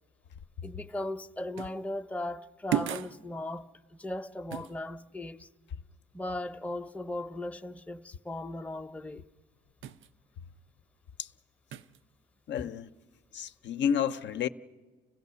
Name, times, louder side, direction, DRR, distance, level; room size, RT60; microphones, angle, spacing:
voice 1, 0.6-5.5 6.1-9.2, left 1 dB, 5° left, 0.6 m, -37 dB
sound 1, 1.6-1.8 2.7-3.2 4.5-4.8 9.8-10.1 11.7-12.0, right 11 dB, 75° right, 0.6 m, -34 dB
voice 2, 12.5-12.9 13.3-14.5, left 8 dB, 65° left, 0.6 m, -30 dB
29.0 x 15.5 x 6.8 m
cardioid pair, 90°, 20 cm